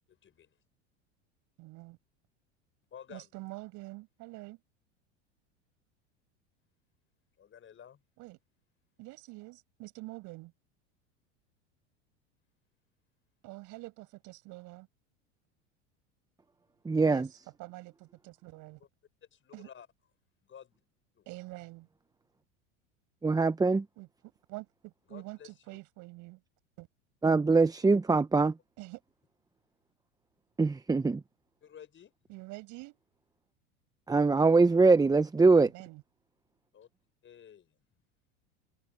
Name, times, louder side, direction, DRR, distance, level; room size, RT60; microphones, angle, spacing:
voice 1, 0.1-0.6 2.9-3.3 7.4-8.0 18.8-18.9 19.3-19.9 20.4-20.8 21.1-21.3 25.1-25.8 31.6-32.4 36.7-36.9 37.2-37.8, left 8 dB, 35° left, 7.1 m, -52 dB
voice 2, 1.6-2.0 3.1-4.6 8.2-8.4 9.0-10.5 13.4-14.9 17.0-17.3 17.6-18.8 19.5-19.7 21.3-21.9 24.0-24.1 24.5-26.4 26.8-26.9 28.8-29.0 32.3-33.0 35.6-36.0, right 22 dB, 60° right, 7.8 m, -46 dB
voice 3, 16.8-17.3 23.2-23.8 27.2-28.5 30.6-31.2 34.1-35.7, right 3 dB, 10° right, 0.9 m, -23 dB
hypercardioid pair, 95°, 35 cm